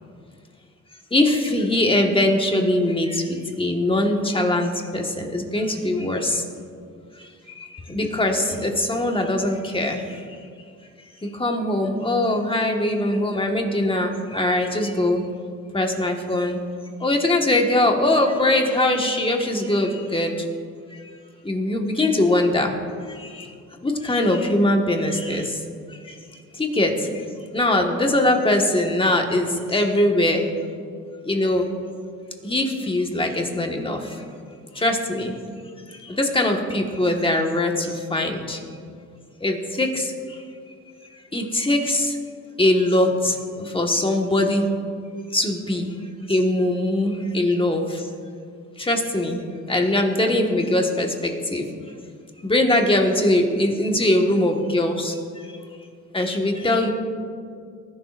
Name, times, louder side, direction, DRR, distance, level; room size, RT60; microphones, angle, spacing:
voice 1, 1.1-6.4 7.9-10.0 11.4-15.2 15.7-16.6 17.0-20.3 21.4-22.7 23.8-25.5 26.6-26.9 27.5-30.5 31.3-31.7 32.4-34.0 34.8-35.3 36.2-38.6 39.4-40.1 41.3-42.1 42.6-43.3 43.7-44.7 45.3-45.9 46.3-47.8 48.8-49.4 49.7-51.6 52.4-55.1 56.1-56.9, left 1 dB, 15° left, 2 dB, 1.6 m, -21 dB
20.0 x 11.0 x 2.6 m, 2.2 s
cardioid pair, 90°, 30 cm